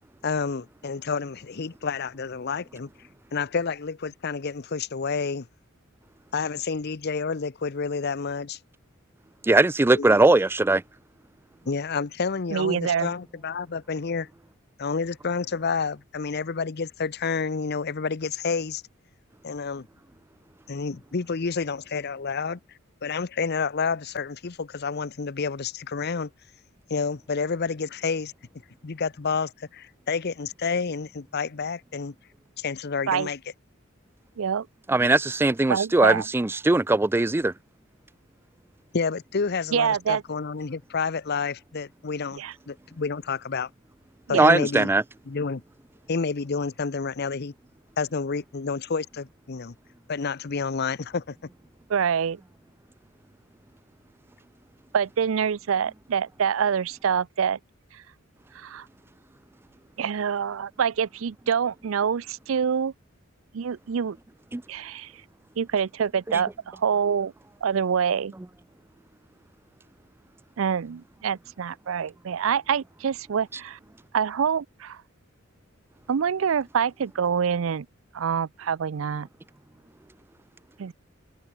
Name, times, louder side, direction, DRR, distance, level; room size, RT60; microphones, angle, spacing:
voice 1, 0.2-2.9 3.3-5.5 6.3-8.6 9.9-10.2 11.7-14.3 14.8-18.8 19.4-19.9 20.7-22.6 23.0-26.3 26.9-28.3 28.8-32.1 32.6-33.4 38.9-43.7 44.3-44.9 45.3-45.6 46.1-47.5 48.0-49.7 50.1-51.4, left 5 dB, 50° left, 0.7 m, -29 dB
voice 2, 9.4-10.8 34.9-37.5 44.3-45.0 64.5-64.6, right 2 dB, 10° right, 0.3 m, -20 dB
voice 3, 12.5-13.1 33.1-33.3 34.4-34.7 35.7-36.2 39.7-40.2 42.4-42.5 44.3-44.5 51.9-52.4 54.9-57.6 57.9-58.0 58.5-58.9 60.0-62.9 63.5-64.2 64.7-65.1 65.6-67.3 67.6-68.3 70.6-73.8 74.1-75.0 76.1-77.9 78.1-79.3 80.8-80.9, right 7 dB, 75° right, 0.5 m, -26 dB
head